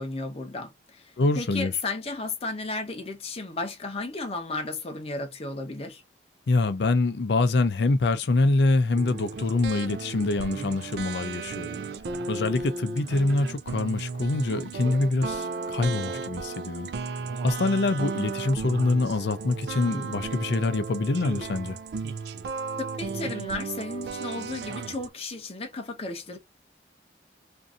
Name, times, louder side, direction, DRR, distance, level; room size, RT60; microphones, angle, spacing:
voice 1, 0.0-6.0 22.8-26.4, left 3 dB, 35° left, 0.7 m, -34 dB
voice 2, 1.2-1.7 6.5-11.8 12.3-16.9 17.4-21.8, left 2 dB, 70° left, 0.5 m, -25 dB
sound 1, 8.9-25.1, right 4 dB, 60° right, 0.3 m, -34 dB
2.6 x 2.5 x 2.4 m
head